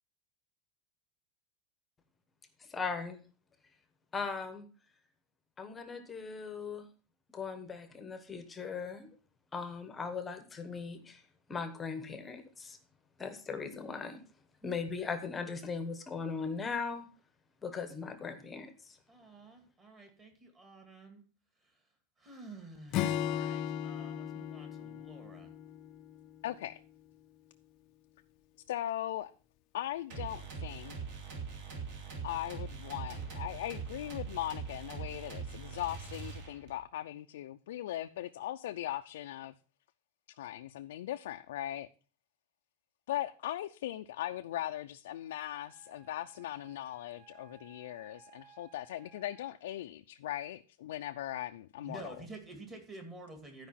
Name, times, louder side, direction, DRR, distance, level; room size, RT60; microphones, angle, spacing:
voice 1, 2.6-3.2 4.1-4.7 5.6-6.9 7.3-9.1 9.5-11.2 11.5-12.8 13.2-14.2 14.6-17.0 17.6-19.0, left 5 dB, 10° left, 1.0 m, -39 dB
voice 2, 19.1-21.2 21.6-21.7 22.2-25.5 51.8-53.7, right 2 dB, 15° right, 2.2 m, -50 dB
Acoustic guitar / Strum, 22.9-26.4, left 10 dB, 30° left, 0.6 m, -36 dB
voice 3, 26.4-26.8 28.7-29.3 29.7-30.9 32.2-39.6 40.4-41.9 43.1-52.1, left 13 dB, 80° left, 0.5 m, -39 dB
sound 1, 30.1-36.8, right 5 dB, 50° right, 3.0 m, -42 dB
Wind instrument woodwind instrument, 45.2-49.8, right 7 dB, 35° right, 3.7 m, -61 dB
12.5 x 5.2 x 5.7 m
supercardioid pair, 175°, 0 cm